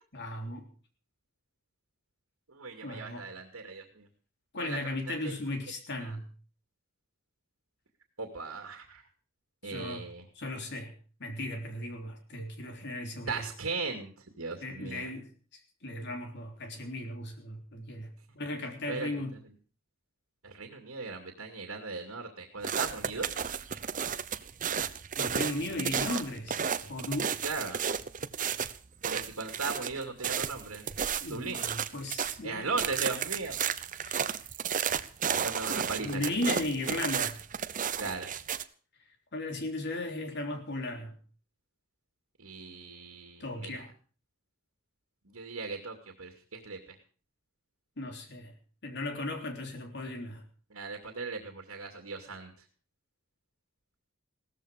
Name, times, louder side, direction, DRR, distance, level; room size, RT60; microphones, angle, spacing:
voice 1, 0.1-0.7 2.8-3.3 4.5-6.3 9.6-10.1 10.4-10.9 11.2-13.5 14.6-15.3 15.8-19.3 25.2-26.6 26.9-27.4 31.2-32.7 34.0-34.4 36.0-37.4 39.3-41.1 43.4-43.9 48.0-48.5 48.8-50.4, left 2 dB, 55° left, 4 dB, 3.5 m, -36 dB
voice 2, 2.5-4.1 4.6-4.8 5.1-5.3 6.0-6.2 8.2-9.0 9.6-10.2 13.3-14.1 14.4-15.1 18.9-19.1 20.4-23.5 25.6-25.9 27.4-27.8 29.0-30.8 31.3-31.6 32.4-33.6 35.3-36.3 38.0-38.3 42.4-43.9 45.3-46.8 50.7-52.5, right 4 dB, 85° right, 4 dB, 2.4 m, -38 dB
sound 1, 22.6-32.4 32.8-38.6, right 7 dB, 40° right, 0.8 m, -33 dB
17.0 x 14.0 x 5.1 m, 0.40 s
head